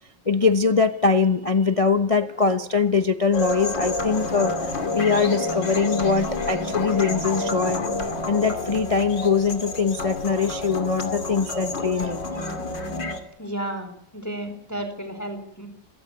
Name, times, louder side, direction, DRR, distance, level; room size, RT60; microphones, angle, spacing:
voice 1, 0.3-7.9 8.3-13.0, left 5 dB, 25° left, 9 dB, 0.8 m, -22 dB
sound 1, 3.3-13.2, left 2 dB, 80° left, 3.4 m, -29 dB
voice 2, 13.4-15.7, right 1 dB, 10° left, 8 dB, 4.1 m, -33 dB
28.0 x 16.5 x 9.6 m, 0.70 s
omnidirectional pair, 2.0 m